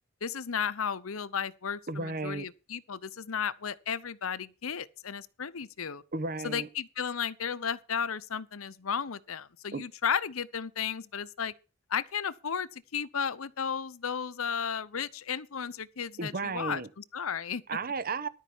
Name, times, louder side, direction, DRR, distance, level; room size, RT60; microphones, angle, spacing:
voice 1, 0.2-6.0 6.4-11.5 11.9-17.6, left 7 dB, 80° left, 0.8 m, -34 dB
voice 2, 1.9-2.5 6.1-6.7 9.7-9.8 16.2-16.9 17.7-18.3, right 3 dB, 45° right, 1.0 m, -33 dB
13.0 x 5.4 x 7.2 m
head